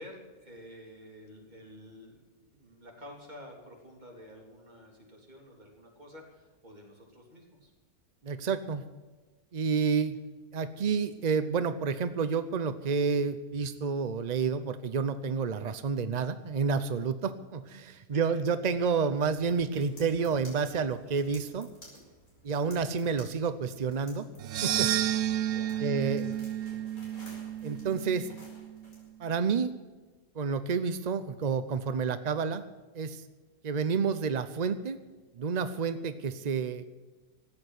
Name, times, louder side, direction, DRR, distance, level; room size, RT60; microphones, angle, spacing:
voice 1, 0.0-7.7 18.0-18.4 25.4-26.5, left 1 dB, 30° right, 0 dB, 3.5 m, -50 dB
voice 2, 8.2-8.8 9.5-10.2 10.5-21.7 22.4-24.3 24.6-24.9 25.8-26.2 27.6-28.3 29.2-29.7 30.4-32.6 32.9-33.2 33.6-35.0 35.4-36.9, right 5 dB, 60° right, 11 dB, 0.4 m, -29 dB
sound 1, 19.2-29.1, equal, 60° left, 5.6 m, -55 dB
sound 2, 24.4-28.7, right 12 dB, 75° right, 1.2 m, -31 dB
14.0 x 8.9 x 9.5 m, 1.3 s
omnidirectional pair, 1.6 m